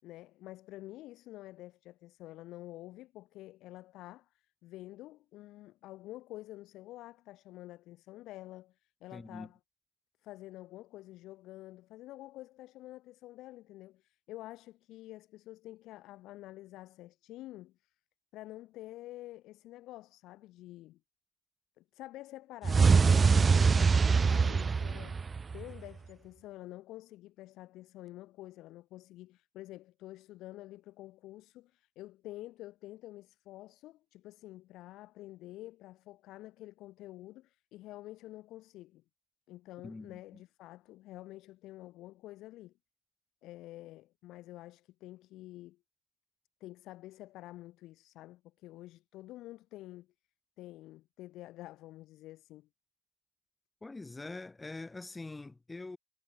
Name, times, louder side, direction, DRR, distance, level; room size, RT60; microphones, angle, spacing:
voice 1, 0.0-9.6 10.2-17.9 18.3-21.0 21.8-25.2 25.5-39.0 39.5-42.7 43.4-45.8 46.6-50.1 50.6-52.7, left 16 dB, 80° left, 7.3 m, -49 dB
voice 2, 9.1-9.5 39.8-40.4 53.8-56.0, left 3 dB, 15° left, 2.2 m, -44 dB
sound 1, 22.6-25.8, right 5 dB, 25° right, 0.8 m, -24 dB
cardioid pair, 145°, 0 cm